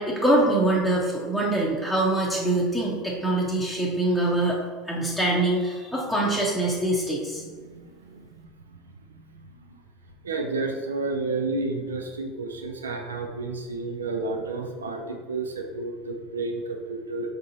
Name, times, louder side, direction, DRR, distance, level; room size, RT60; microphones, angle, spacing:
voice 1, 0.0-4.6 4.9-7.4, right 1 dB, ahead, -5 dB, 0.8 m, -24 dB
voice 2, 10.2-17.3, right 3 dB, 80° right, 4 dB, 0.5 m, -30 dB
5.0 x 3.7 x 2.7 m, 1.5 s
figure-of-eight pair, 75°, 0 cm